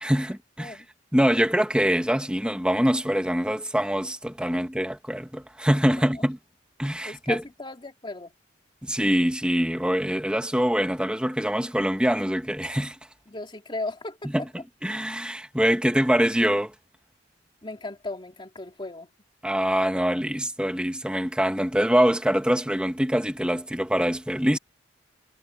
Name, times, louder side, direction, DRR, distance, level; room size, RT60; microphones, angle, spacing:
voice 1, 0.0-0.8 1.1-6.4 6.8-7.4 8.8-13.0 14.2-14.5 14.8-16.7 19.4-24.6, equal, 5° right, 1.9 m, -24 dB
voice 2, 7.0-8.3 13.3-14.3 17.6-19.1, left 2 dB, 25° left, 2.9 m, -36 dB
head